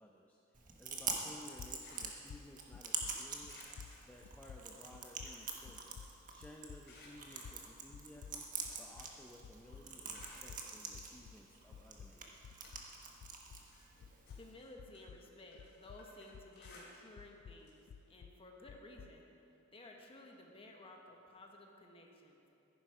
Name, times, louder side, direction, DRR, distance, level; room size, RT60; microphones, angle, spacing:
voice 1, 0.0-3.6 4.1-5.9 6.3-8.5 8.8-12.6, left 1 dB, 5° left, -2 dB, 0.7 m, -57 dB
Chewing mastication, 0.5-14.5, right 5 dB, 40° right, 1.4 m, -46 dB
sound 1, 1.0-9.2 9.4-13.8 14.0-16.9 17.2-19.2, left 7 dB, 75° left, 0.3 m, -55 dB
sound 2, 1.8-3.0 3.5-4.7 5.0-6.3 6.8-9.3 9.6-10.8 11.5-11.6 12.1-13.2 13.5-17.3 17.6-17.8 18.2-18.3 19.5-19.6, left 2 dB, 55° left, 3.6 m, -61 dB
voice 2, 14.3-19.2 19.7-22.4, left 2 dB, 25° left, 0 dB, 1.5 m, -55 dB
15.0 x 10.5 x 5.0 m, 2.8 s
head